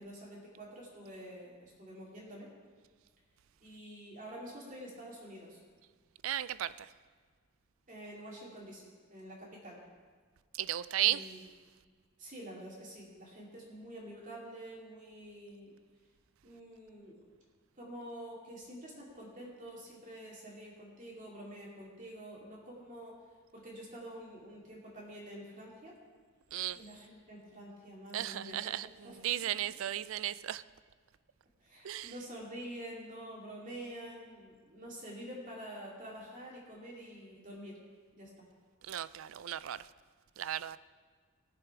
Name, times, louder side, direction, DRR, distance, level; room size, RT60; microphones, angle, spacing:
voice 1, 0.0-2.5 3.6-5.6 7.9-9.8 11.0-11.4 12.2-15.7 16.4-17.3 17.8-23.2 23.5-26.0 26.7-28.7 29.0-29.2 31.6-37.8 38.1-38.4, right 1 dB, 40° right, 2.4 m, -47 dB
voice 2, 6.2-6.9 10.6-11.3 26.5-26.8 28.1-30.6 31.8-32.1 38.9-39.8 40.4-40.8, right 13 dB, 75° right, 0.4 m, -35 dB
17.5 x 7.0 x 4.8 m
head